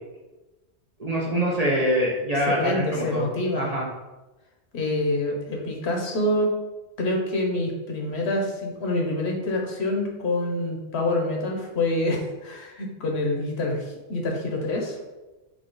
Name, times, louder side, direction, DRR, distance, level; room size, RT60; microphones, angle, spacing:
voice 1, 1.0-3.3 3.5-3.9, equal, 40° right, -4 dB, 0.7 m, -24 dB
voice 2, 2.5-3.7 4.7-6.5 7.0-15.0, left 1 dB, 75° left, 1 dB, 1.1 m, -26 dB
3.8 x 3.1 x 3.9 m, 1.1 s
omnidirectional pair, 1.1 m